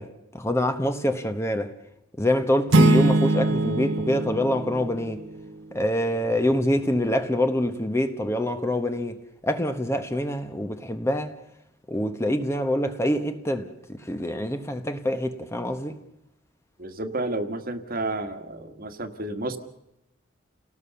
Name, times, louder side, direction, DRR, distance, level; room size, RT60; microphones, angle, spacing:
voice 1, 0.0-1.7 2.2-5.2 5.7-11.3 11.9-16.0, left 1 dB, 15° left, 1.1 m, -25 dB
sound 1, 2.7-5.5, right 2 dB, 70° right, 1.1 m, -22 dB
voice 2, 16.8-19.6, right 2 dB, 45° right, 1.6 m, -31 dB
30.0 x 18.0 x 7.0 m
head